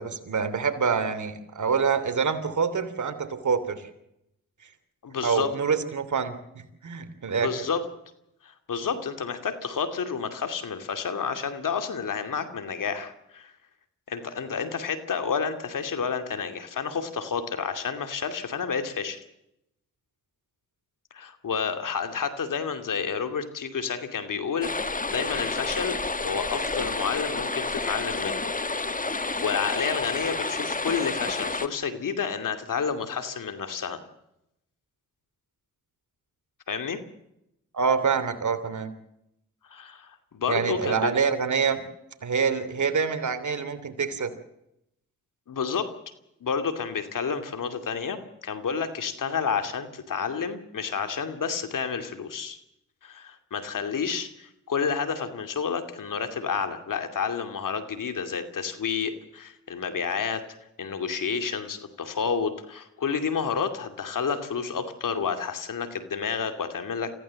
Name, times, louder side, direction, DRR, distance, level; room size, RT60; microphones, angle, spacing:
voice 1, 0.0-3.8 5.2-7.5 37.7-38.9 40.5-41.8 42.2-44.3, right 6 dB, 60° right, 10 dB, 3.1 m, -26 dB
voice 2, 5.0-5.5 7.3-7.8 8.4-13.5 14.1-19.2 21.1-28.5 29.4-34.0 36.7-37.0 39.7-41.1 45.5-45.9 46.4-52.6 53.0-60.4 60.8-67.1, left 6 dB, 65° left, 8 dB, 2.6 m, -30 dB
sound 1, 24.6-31.7, left 3 dB, 25° left, 1.5 m, -30 dB
25.0 x 15.5 x 7.6 m, 0.83 s
supercardioid pair, 45°, 34 cm